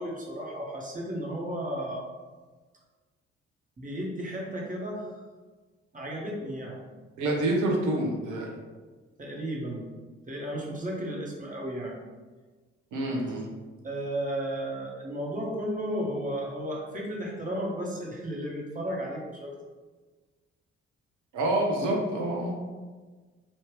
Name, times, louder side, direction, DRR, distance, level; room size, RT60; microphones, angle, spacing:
voice 1, 0.0-2.0 3.8-5.2 5.9-6.9 9.2-9.9 10.3-12.0 13.8-19.5, equal, 25° right, -3 dB, 1.2 m, -34 dB
voice 2, 7.2-8.6 12.9-13.5 21.3-22.8, right 1 dB, 65° right, -1 dB, 0.9 m, -27 dB
3.2 x 2.8 x 3.3 m, 1.3 s
hypercardioid pair, 45°, 33 cm